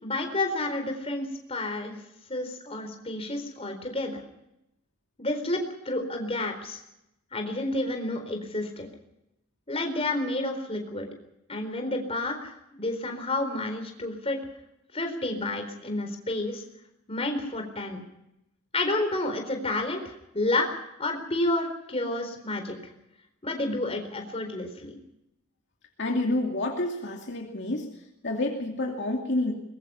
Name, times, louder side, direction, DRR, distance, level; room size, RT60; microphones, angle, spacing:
voice 1, 0.0-2.0 2.3-4.2 5.2-6.8 7.3-8.9 9.7-11.1 11.5-14.4 14.9-16.6 17.1-18.0 18.7-20.7 21.0-22.8 23.4-25.0, left 2 dB, 25° left, 5 dB, 4.3 m, -30 dB
voice 2, 26.0-27.9 28.2-29.5, left 2 dB, 55° left, 1 dB, 2.6 m, -28 dB
23.0 x 22.0 x 5.7 m, 0.84 s
head